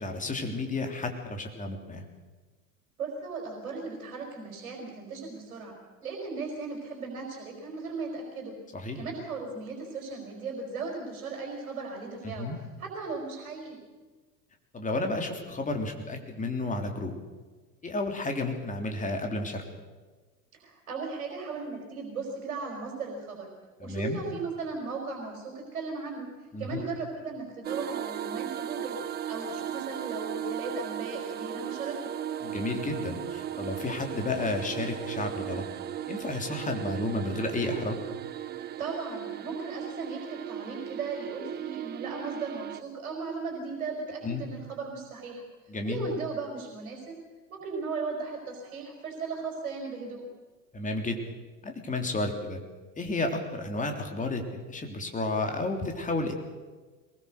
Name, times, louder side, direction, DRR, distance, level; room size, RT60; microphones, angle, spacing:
voice 1, 0.0-2.0 8.7-9.0 12.2-12.6 14.7-17.2 17.8-19.6 23.8-24.2 26.5-26.8 32.4-35.6 36.1-38.0 44.2-44.4 45.7-46.1 50.7-51.2 51.6-52.6 53.0-56.3, left 2 dB, 15° left, 4 dB, 3.3 m, -32 dB
voice 2, 3.0-5.7 6.0-8.5 8.9-12.5 12.8-13.8 20.5-23.5 23.8-26.3 26.6-29.0 29.3-32.0 38.8-45.4 45.8-47.2 47.5-50.2, right 4 dB, 65° right, 1 dB, 4.9 m, -36 dB
sound 1, 27.6-42.8, right 10 dB, 25° right, 0.7 m, -36 dB
22.5 x 20.0 x 6.6 m, 1.4 s
figure-of-eight pair, 80°, 44 cm